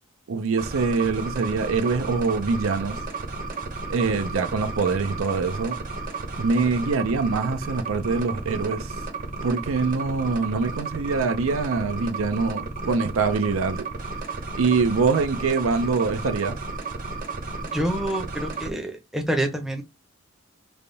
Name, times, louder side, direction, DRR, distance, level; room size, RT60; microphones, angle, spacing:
voice 1, 0.3-3.0 3.9-5.8 6.4-9.0 9.4-13.9 14.5-16.6, right 4 dB, 80° right, 0.5 m, -24 dB
sound 1, 0.6-18.7, right 3 dB, 40° right, 0.8 m, -33 dB
voice 2, 17.7-19.8, right 1 dB, ahead, 0.7 m, -27 dB
3.4 x 2.3 x 3.9 m
head